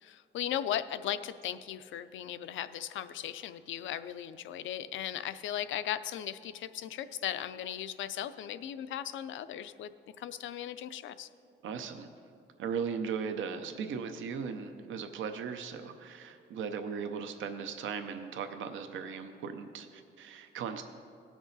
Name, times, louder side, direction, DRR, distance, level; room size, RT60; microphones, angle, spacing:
voice 1, 0.0-9.9 10.2-11.3, left 11 dB, 80° left, 13 dB, 0.5 m, -37 dB
voice 2, 11.6-12.1 12.6-20.8, right 6 dB, 85° right, 7 dB, 0.7 m, -37 dB
18.0 x 6.1 x 4.0 m, 2.4 s
cardioid pair, 125°, 19 cm